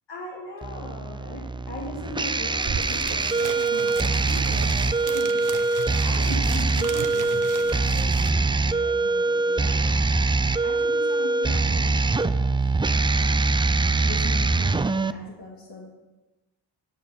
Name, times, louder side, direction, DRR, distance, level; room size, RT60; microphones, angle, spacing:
voice 1, 0.1-5.5 6.0-9.9 10.6-13.5 13.8-15.8, left 2 dB, 70° left, -4 dB, 2.0 m, -39 dB
sound 1, 0.6-15.1, right 3 dB, 10° right, 0.3 m, -23 dB
sound 2, 2.3-2.4 2.5-8.3, right 6 dB, 45° right, 0.9 m, -36 dB
11.0 x 6.6 x 5.6 m, 1.1 s
cardioid pair, 65°, 44 cm